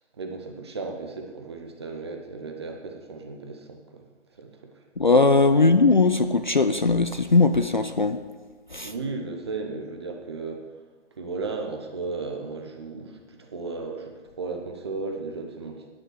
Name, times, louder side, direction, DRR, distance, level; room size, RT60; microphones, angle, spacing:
voice 1, 0.2-4.0 4.4-4.7 5.5-5.7 8.8-10.6 11.2-15.9, right 3 dB, 20° right, 3 dB, 0.9 m, -35 dB
voice 2, 5.0-8.2 8.7-8.9, left 3 dB, 40° left, 9 dB, 0.4 m, -19 dB
13.0 x 9.6 x 4.7 m, 1.3 s
figure-of-eight pair, 150°, 37 cm